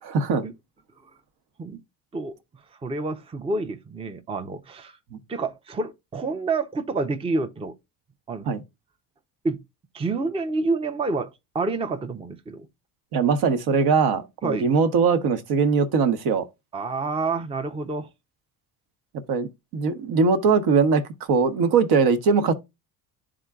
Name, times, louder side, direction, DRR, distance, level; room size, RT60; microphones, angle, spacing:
voice 1, 0.0-0.4 5.1-5.2 8.5-8.6 13.1-16.5 19.3-22.5, right 5 dB, 60° right, 1.0 m, -21 dB
voice 2, 2.8-5.0 5.3-7.7 8.3-8.5 9.4-9.6 9.9-12.7 14.4-14.7 16.7-18.1, right 3 dB, 15° right, 0.6 m, -28 dB
11.0 x 3.7 x 2.3 m
supercardioid pair, 80°, 43 cm